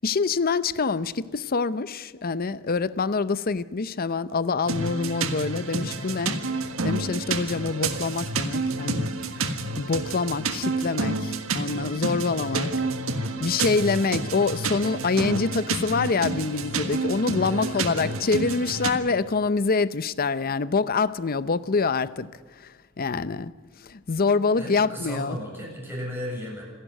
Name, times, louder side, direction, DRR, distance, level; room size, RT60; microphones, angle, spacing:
voice 1, 0.0-6.4 6.8-9.1 9.4-12.7 13.4-22.3 22.6-23.5 23.9-25.4, left 4 dB, 45° left, 0.7 m, -26 dB
sound 1, 4.7-18.9, right 3 dB, 80° right, 1.6 m, -29 dB
voice 2, 12.3-13.5 17.4-18.3 24.6-26.6, equal, 10° right, 7.6 m, -36 dB
27.0 x 11.5 x 9.2 m
head